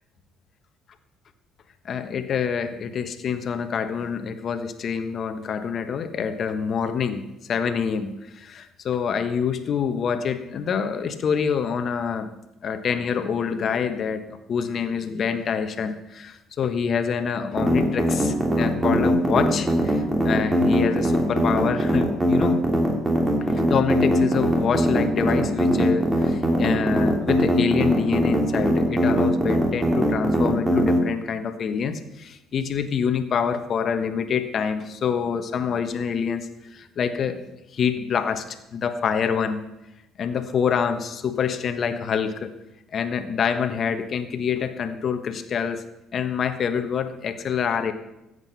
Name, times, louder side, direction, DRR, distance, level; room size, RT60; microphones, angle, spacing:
voice 1, 1.8-12.3 12.6-14.2 14.5-22.6 23.7-37.5 37.7-39.6 40.2-42.5 42.9-45.8 46.1-47.9, left 6 dB, 50° left, 9 dB, 1.3 m, -26 dB
sound 1, 17.6-31.0, right 1 dB, 25° right, 3.2 m, -21 dB
15.0 x 8.2 x 5.7 m, 0.91 s
hypercardioid pair, 65°, 0 cm